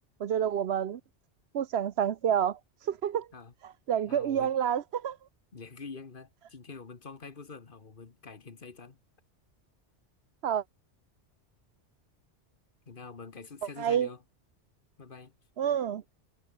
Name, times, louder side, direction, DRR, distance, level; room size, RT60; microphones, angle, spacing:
voice 1, 0.2-1.0 1.5-2.6 2.9-3.3 3.9-5.2 10.4-10.6 13.8-14.1 15.6-16.0, right 9 dB, 65° right, 1.0 m, -28 dB
voice 2, 4.0-4.6 5.5-9.0 12.8-14.2 15.0-15.3, left 4 dB, 45° left, 1.6 m, -46 dB
omnidirectional pair, 1.2 m